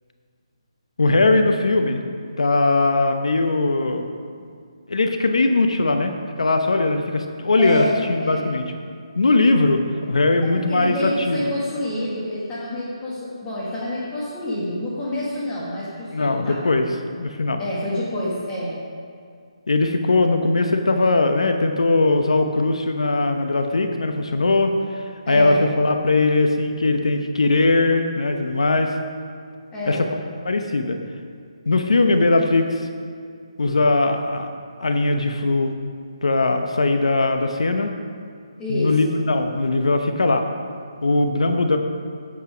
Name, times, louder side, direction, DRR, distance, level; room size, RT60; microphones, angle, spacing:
voice 1, 1.0-2.0 2.4-4.1 4.9-8.6 9.2-9.8 10.1-11.5 16.1-16.9 17.2-17.6 19.7-29.0 29.9-30.0 30.4-31.0 31.7-32.8 33.6-34.5 34.8-35.7 36.2-37.9 38.7-40.4 41.0-41.8, left 2 dB, 80° left, 6 dB, 0.8 m, -20 dB
voice 2, 7.6-8.4 10.4-16.6 17.6-18.7 25.2-25.7 29.7-30.0 38.6-39.2, left 1 dB, 15° left, -8 dB, 1.5 m, -27 dB
8.4 x 8.0 x 5.0 m, 2.2 s
hypercardioid pair, 155°, 3 cm